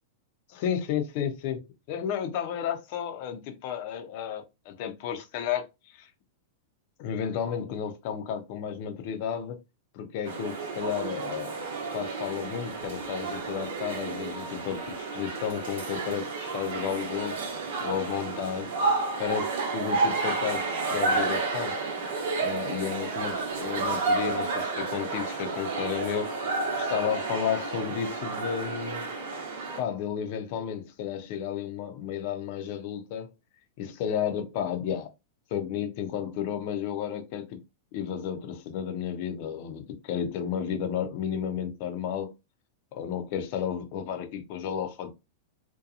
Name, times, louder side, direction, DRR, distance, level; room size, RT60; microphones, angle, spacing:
voice 1, 0.5-1.6 1.9-6.1 7.0-9.6 9.9-11.5 11.9-17.4 17.8-18.7 19.2-21.8 22.4-26.3 26.8-29.1 29.8-33.3 33.8-35.1 35.5-37.6 37.9-42.3 42.9-45.1, left 8 dB, 55° left, 0.6 m, -32 dB
sound 1, 10.3-29.8, right 3 dB, 70° right, 0.9 m, -31 dB
2.7 x 2.2 x 2.4 m
hypercardioid pair, 120°, 0 cm